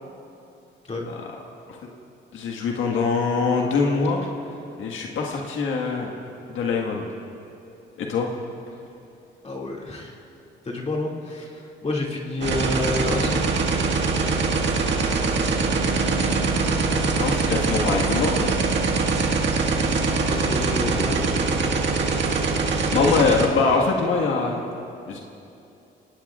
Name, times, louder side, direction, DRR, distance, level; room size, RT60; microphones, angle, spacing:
voice 1, 2.3-4.3 4.8-6.1 6.5-7.1 8.0-8.3 16.0-16.1 16.9-18.5 22.9-24.6 25.1-25.2, left 4 dB, 80° left, 0 dB, 1.7 m, -23 dB
voice 2, 9.4-10.2 10.6-13.9 15.2-15.3 16.1-16.6 20.2-21.3, left 2 dB, 35° left, -2 dB, 2.4 m, -29 dB
sound 1, 12.4-23.5, right 4 dB, 65° right, 1.8 m, -23 dB
26.0 x 18.5 x 2.4 m, 2.7 s
cardioid pair, 90°, 20 cm